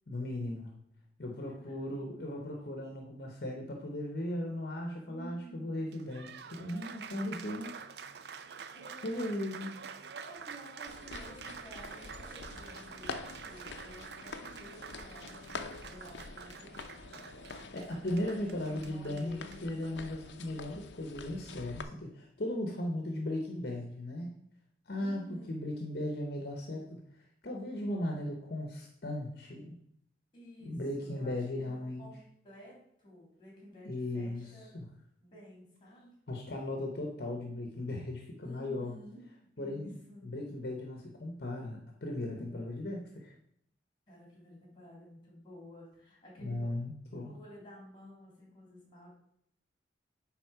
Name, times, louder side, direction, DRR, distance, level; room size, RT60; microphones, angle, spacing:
voice 1, 0.1-0.7 1.2-7.8 9.0-9.7 17.7-24.4 24.9-29.8 30.6-32.1 33.8-34.9 36.3-38.9 39.6-39.9 40.2-43.4 46.4-47.3, left 1 dB, 60° left, 1 dB, 0.9 m, -37 dB
voice 2, 1.5-2.2 5.0-5.9 8.7-9.5 10.2-17.2 18.1-19.9 25.0-25.8 30.3-34.7 35.2-36.2 38.4-40.4 44.1-46.8 47.2-49.1, equal, 25° left, -2 dB, 2.7 m, -53 dB
Applause, 5.8-20.5, right 6 dB, 60° right, 0.4 m, -48 dB
sound 1, 10.9-21.8, left 4 dB, 75° left, 0.5 m, -46 dB
9.1 x 3.7 x 4.7 m, 0.73 s
head